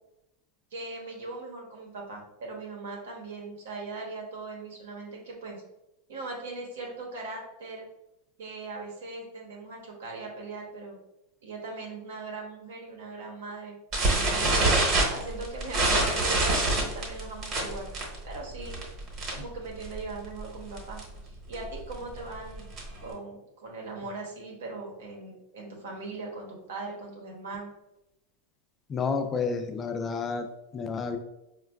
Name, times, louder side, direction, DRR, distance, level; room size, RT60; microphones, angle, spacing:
voice 1, 0.7-5.6 6.1-7.9 8.4-11.0 11.4-13.8 14.0-14.5 15.0-17.9 18.2-18.8 19.3-21.0 21.3-22.7 23.0-27.7, right 3 dB, 85° right, 0 dB, 1.0 m, -40 dB
sound 1, 13.9-19.5 19.8-20.1 20.4-20.5 20.8-21.0 21.5-23.1, right 2 dB, 40° right, 1.0 m, -25 dB
voice 2, 28.9-30.5 30.7-31.2, left 5 dB, 25° left, 6 dB, 0.3 m, -30 dB
4.4 x 2.3 x 2.2 m, 0.89 s
supercardioid pair, 130°, 0 cm